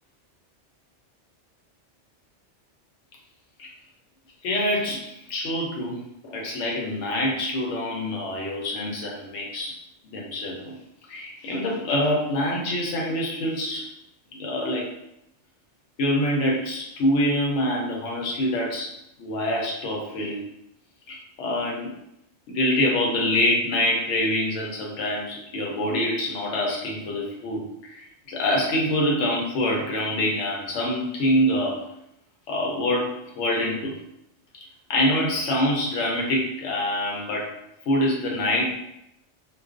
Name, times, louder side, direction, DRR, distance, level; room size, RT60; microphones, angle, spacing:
voice 1, 4.4-6.0 6.2-9.7 10.1-10.7 11.1-13.9 14.3-14.9 16.0-20.4 21.1-21.9 22.5-31.8 32.5-33.9 34.9-37.5 37.9-38.7, left 1 dB, 90° left, -1 dB, 0.9 m, -25 dB
2.4 x 2.2 x 2.4 m, 0.82 s
omnidirectional pair, 1.2 m